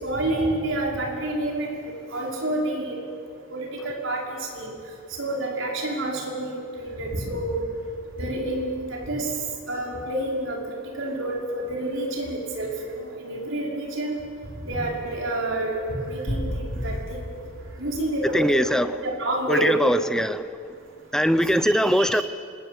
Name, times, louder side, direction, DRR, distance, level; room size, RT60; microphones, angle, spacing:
voice 1, 0.0-3.0 3.5-4.7 5.2-7.6 8.2-9.3 9.7-14.2 14.7-15.8 16.1-17.0 17.8-18.6 18.9-19.7 21.6-22.2, right 1 dB, 60° right, -1 dB, 5.6 m, -28 dB
sound 1, 16.3-18.8, equal, 55° left, 5.0 m, -33 dB
voice 2, 18.3-19.0 19.5-20.4 21.1-22.2, equal, 5° left, 12 dB, 0.7 m, -21 dB
25.5 x 21.5 x 9.4 m, 2.3 s
head